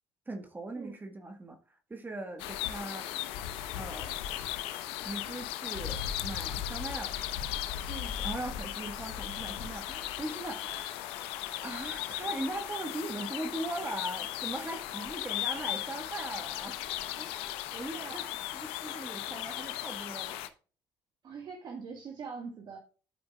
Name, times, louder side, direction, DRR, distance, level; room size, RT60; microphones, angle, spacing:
voice 1, 0.3-3.1 3.8-4.2 5.0-7.3 8.2-11.2 11.6-16.8 17.2-18.2 18.5-20.4, right 2 dB, 20° right, 1.4 m, -40 dB
sound 1, 2.4-20.5, left 12 dB, 85° left, 0.8 m, -37 dB
voice 2, 7.9-8.2 17.9-18.4 21.2-22.8, right 5 dB, 50° right, 1.5 m, -43 dB
12.5 x 5.1 x 2.3 m
supercardioid pair, 85°, 9 cm